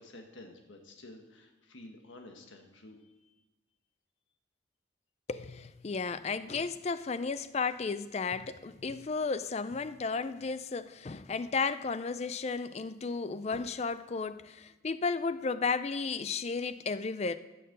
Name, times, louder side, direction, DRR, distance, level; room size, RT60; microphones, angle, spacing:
voice 1, 0.0-3.3, left 2 dB, 85° left, 1.4 m, -51 dB
voice 2, 5.3-17.4, left 4 dB, 35° left, 0.4 m, -33 dB
14.0 x 6.7 x 6.6 m
head